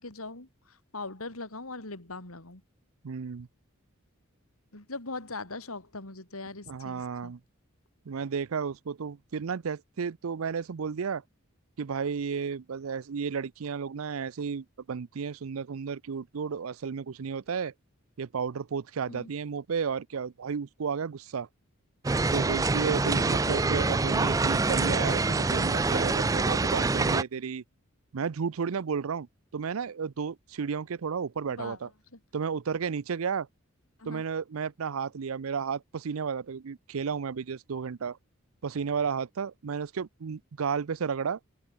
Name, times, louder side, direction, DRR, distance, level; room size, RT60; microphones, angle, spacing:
voice 1, 0.0-2.6 4.7-7.3 19.1-19.3 23.5-23.6 31.5-31.8 32.1-32.2 34.0-34.2, left 3 dB, 90° left, 3.9 m, -41 dB
voice 2, 3.0-3.5 6.7-7.4 8.1-11.2 11.8-17.7 18.2-21.5 22.3-27.6 28.1-29.3 29.5-31.9 32.3-33.5 34.1-38.2 38.6-41.4, right 6 dB, 80° right, 0.5 m, -33 dB
sound 1, 22.0-27.2, right 3 dB, 15° right, 0.4 m, -26 dB
open air
head